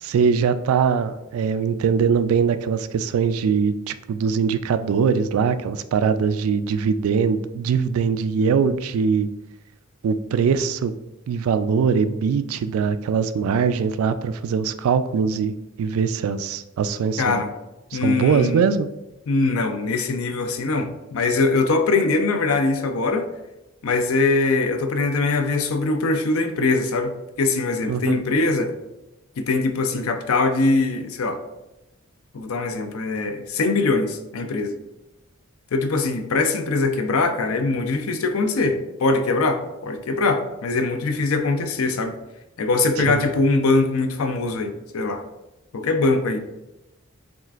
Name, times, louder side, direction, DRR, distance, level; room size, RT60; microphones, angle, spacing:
voice 1, 0.0-9.3 10.0-10.9 11.3-17.4 17.9-18.9 27.9-28.2 43.1-43.2, right 6 dB, 80° right, 15 dB, 0.3 m, -22 dB
voice 2, 17.2-17.5 17.9-18.6 19.3-23.3 23.8-28.7 29.4-31.4 32.3-34.8 35.7-42.2 42.6-45.2 45.7-46.4, left 3 dB, 80° left, 7 dB, 0.5 m, -22 dB
7.3 x 2.4 x 2.4 m, 0.95 s
head